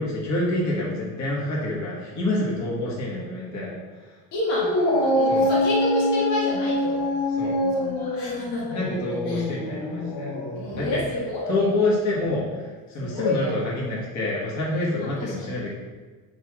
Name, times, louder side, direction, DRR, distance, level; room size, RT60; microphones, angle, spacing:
voice 1, 0.0-4.2 5.3-5.5 7.4-7.6 8.7-10.3 10.6-11.0 11.5-15.7, left 2 dB, 45° left, -5 dB, 1.9 m, -27 dB
voice 2, 4.3-4.7 5.0-7.1 7.6-8.7 9.3-9.5 10.5-11.8 13.0-13.6 15.0-15.3, left 1 dB, 85° left, -4 dB, 2.0 m, -30 dB
Dog, 4.5-11.1, left 1 dB, 65° left, 1.5 m, -25 dB
10.0 x 3.8 x 3.3 m, 1.4 s
cardioid pair, 140°, 40 cm